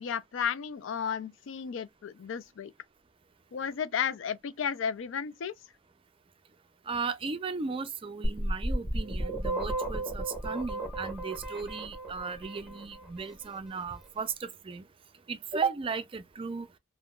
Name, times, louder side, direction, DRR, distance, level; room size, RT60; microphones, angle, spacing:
voice 1, 0.0-2.7 3.5-5.5, left 7 dB, 80° left, 0.4 m, -33 dB
voice 2, 6.9-14.9 15.3-16.7, right 5 dB, 30° right, 0.4 m, -35 dB
sound 1, 8.2-13.1, right 1 dB, ahead, 1.2 m, -34 dB
3.6 x 2.1 x 2.2 m
head